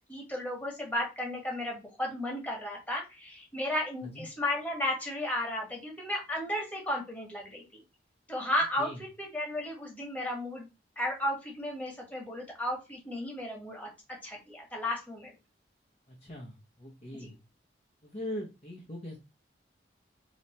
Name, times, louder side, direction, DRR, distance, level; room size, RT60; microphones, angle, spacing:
voice 1, 0.1-7.6 8.3-8.9 9.2-10.7 11.0-13.9 14.2-15.3 17.1-17.3, left 1 dB, 10° left, -2 dB, 1.4 m, -34 dB
voice 2, 16.1-17.4 18.0-19.2, left 1 dB, 35° left, -2 dB, 1.0 m, -41 dB
3.3 x 3.1 x 4.2 m, 0.26 s
head